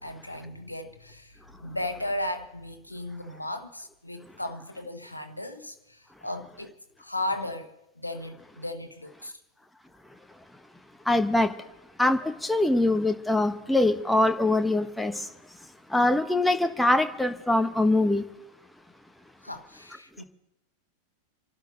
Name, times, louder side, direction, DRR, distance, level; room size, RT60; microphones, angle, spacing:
voice 1, 0.0-6.7 7.0-9.4 19.4-20.2, left 1 dB, 85° left, 1.2 m, -36 dB
voice 2, 11.1-11.5 12.0-15.3 15.9-18.2, left 2 dB, 5° left, 1.2 m, -23 dB
28.5 x 12.0 x 3.9 m
figure-of-eight pair, 90°, 0 cm